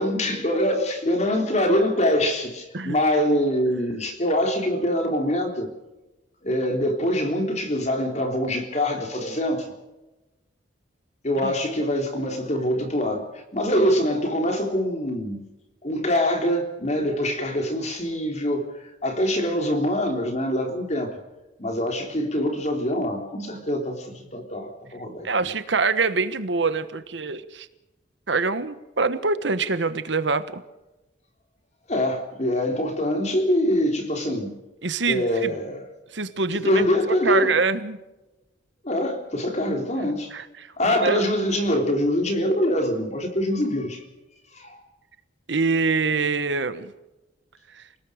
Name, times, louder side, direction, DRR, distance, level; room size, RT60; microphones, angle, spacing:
voice 1, 0.0-5.7 6.4-9.7 11.2-15.4 15.8-21.2 21.6-25.5 31.9-34.6 35.1-35.8 36.5-37.6 38.8-40.3 40.8-44.0 44.5-44.8, equal, 35° left, 5 dB, 3.6 m, -24 dB
voice 2, 25.2-27.7 28.3-30.6 34.8-35.5 36.1-36.8 37.2-38.0 40.3-40.4 40.8-41.3 45.5-46.9, right 4 dB, 70° right, 13 dB, 1.3 m, -24 dB
28.5 x 18.5 x 5.1 m, 1.0 s
head